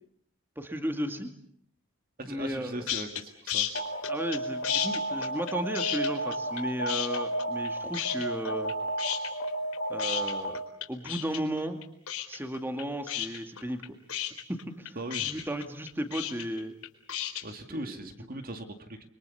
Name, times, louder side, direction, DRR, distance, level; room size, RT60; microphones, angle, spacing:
voice 1, 0.6-1.3 2.3-2.9 4.1-8.7 9.9-10.6 10.9-11.8 12.3-14.0 14.5-16.7 17.7-18.1, right 1 dB, 10° right, 6 dB, 2.3 m, -35 dB
voice 2, 2.2-3.7 15.0-15.4 17.4-19.1, right 1 dB, 40° right, 6 dB, 2.2 m, -39 dB
sound 1, 2.9-3.2 3.5-4.4 4.6-6.6 6.9-7.7 7.9-8.7 9.0-17.4, left 11 dB, 80° left, 4.3 m, -33 dB
Alarm, 3.7-10.8, right 1 dB, 50° left, 2.1 m, -33 dB
30.0 x 24.0 x 7.1 m, 0.65 s
head